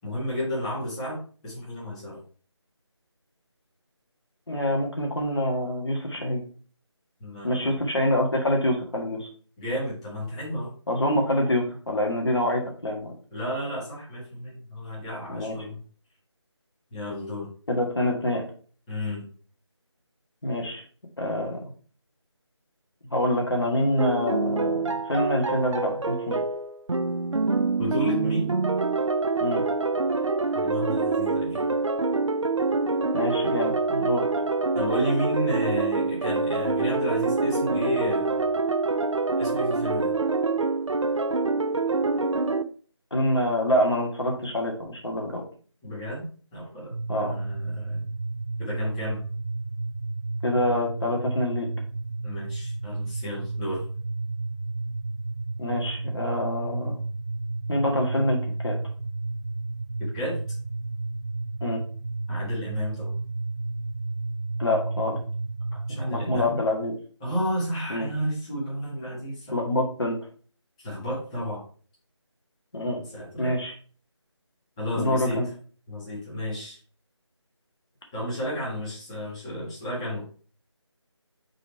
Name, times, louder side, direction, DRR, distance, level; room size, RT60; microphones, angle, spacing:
voice 1, 0.0-2.2 7.2-7.8 9.6-10.7 13.3-15.8 16.9-17.5 18.9-19.2 27.8-28.5 30.5-31.7 34.7-38.4 39.4-40.1 45.8-46.9 47.2-48.0 48.6-49.2 52.2-53.8 60.1-60.4 62.3-63.1 65.9-66.6 67.2-69.6 70.8-71.6 73.0-73.5 74.8-75.4 75.9-76.8 78.1-80.2, equal, 10° left, -8 dB, 1.9 m, -32 dB
voice 2, 4.5-6.4 7.4-9.3 10.9-13.1 15.3-15.6 17.7-18.4 20.4-20.8 21.2-21.6 23.1-26.4 29.4-29.6 33.1-34.3 43.1-45.4 47.1-47.3 50.4-51.7 55.6-57.0 57.7-58.8 61.6-61.8 64.6-65.2 65.9-66.9 67.9-68.1 69.5-70.2 72.7-73.0 73.4-73.7 75.0-75.5, left 1 dB, 60° left, 0 dB, 1.8 m, -26 dB
sound 1, 24.0-42.6, right 3 dB, 85° right, 0.5 m, -26 dB
sound 2, 46.9-66.5, right 2 dB, 35° right, 0.7 m, -32 dB
5.4 x 4.1 x 4.6 m, 0.41 s
figure-of-eight pair, 165°, 15 cm